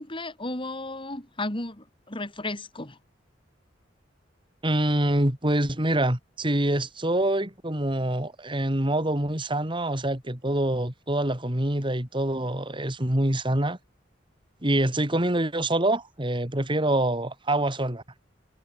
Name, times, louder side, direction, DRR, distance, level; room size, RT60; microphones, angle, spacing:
voice 1, 0.0-3.0, left 2 dB, 25° left, 3.5 m, -34 dB
voice 2, 4.6-13.8 14.6-18.0, right 1 dB, 25° right, 3.2 m, -25 dB
head